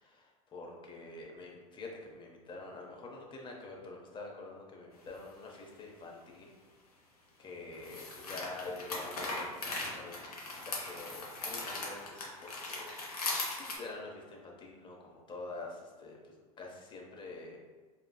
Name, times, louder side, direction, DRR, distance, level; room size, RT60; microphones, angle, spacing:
voice 1, 0.0-6.5 7.4-12.9 13.2-16.2 16.6-17.6, left 3 dB, 25° left, 0 dB, 0.7 m, -47 dB
sound 1, 5.1-5.2 7.7-13.8, left 2 dB, 90° left, 0.7 m, -39 dB
3.9 x 2.3 x 2.2 m, 1.4 s
hypercardioid pair, 80°, 19 cm